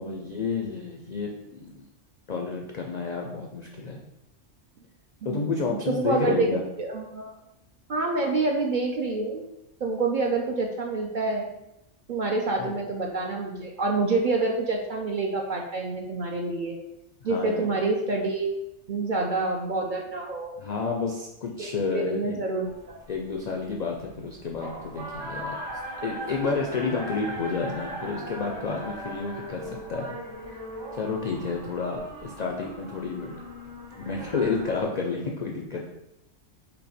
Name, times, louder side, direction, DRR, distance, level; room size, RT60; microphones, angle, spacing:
voice 1, 0.0-1.9 2.3-4.0 5.2-6.6 12.6-12.7 17.2-17.7 20.6-22.4 23.1-30.2 30.9-33.4 34.0-35.8, left 4 dB, 65° left, 1 dB, 0.4 m, -30 dB
voice 2, 5.2-6.5 6.8-7.3 7.9-9.4 9.8-11.5 12.1-16.8 17.2-18.5 18.9-20.5 21.6-23.0, right 3 dB, 60° right, 1 dB, 0.5 m, -27 dB
sound 1, 22.6-34.8, right 1 dB, 85° right, 2.1 m, -39 dB
5.3 x 2.2 x 4.2 m, 0.91 s
omnidirectional pair, 1.3 m